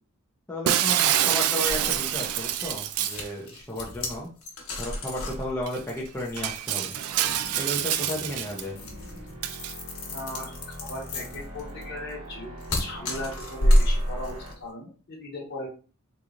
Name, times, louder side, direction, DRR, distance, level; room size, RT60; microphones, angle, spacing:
voice 1, 0.5-4.3 4.8-6.9 7.6-8.8, left 1 dB, 10° left, -5 dB, 0.6 m, -33 dB
Shatter, 0.7-3.3 5.1-5.2 5.7-5.8 6.4-8.6 9.4-9.7, right 11 dB, 80° right, 0.3 m, -26 dB
sound 1, 1.6-14.6, equal, 75° left, 1.1 m, -29 dB
sound 2, 7.1-14.5, right 1 dB, 60° right, 1.2 m, -43 dB
voice 2, 10.1-15.7, left 1 dB, 50° left, -4 dB, 1.0 m, -38 dB
3.7 x 3.0 x 2.5 m, 0.37 s
head